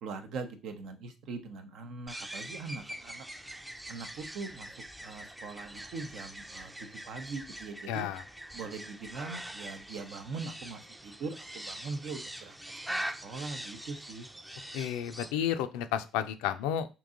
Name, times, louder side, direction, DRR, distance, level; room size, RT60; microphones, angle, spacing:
voice 1, 0.0-3.2 3.9-4.7 5.0-8.1 8.5-12.6 12.9-14.3, right 4 dB, 70° right, 7 dB, 0.7 m, -41 dB
sound 1, 2.1-15.3, right 1 dB, 10° right, 0.5 m, -43 dB
voice 2, 7.9-8.2 14.7-16.9, left 10 dB, 80° left, 10 dB, 0.4 m, -31 dB
3.8 x 2.8 x 3.7 m, 0.30 s
hypercardioid pair, 60°, 0 cm